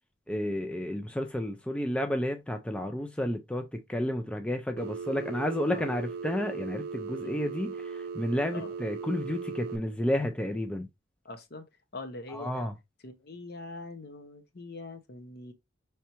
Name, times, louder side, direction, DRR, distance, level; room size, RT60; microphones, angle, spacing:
voice 1, 0.3-10.9 12.3-12.7, left 1 dB, 5° left, 0.3 m, -31 dB
Telephone, 4.8-9.8, right 5 dB, 50° right, 0.5 m, -38 dB
voice 2, 7.2-7.5 8.5-8.7 11.2-11.7 11.9-12.7 13.0-15.5, left 2 dB, 50° left, 0.8 m, -43 dB
5.5 x 3.4 x 2.9 m
head